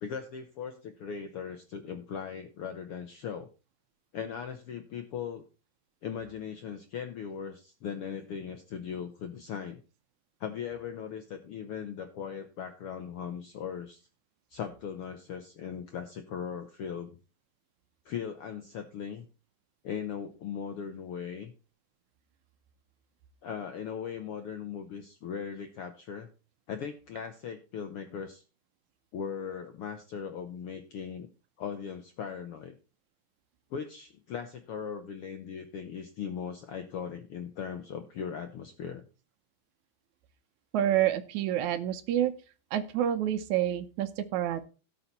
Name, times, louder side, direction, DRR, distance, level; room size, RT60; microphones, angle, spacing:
voice 1, 0.0-3.5 4.1-5.4 6.0-9.8 10.4-14.1 14.5-17.2 18.0-19.3 19.8-21.5 23.4-26.3 26.7-28.4 29.1-31.3 31.6-32.8 33.7-39.0, left 7 dB, 70° left, 7 dB, 1.3 m, -39 dB
voice 2, 40.7-42.3 42.7-44.7, right 11 dB, 75° right, 10 dB, 2.0 m, -28 dB
17.0 x 5.8 x 4.1 m, 0.33 s
omnidirectional pair, 3.7 m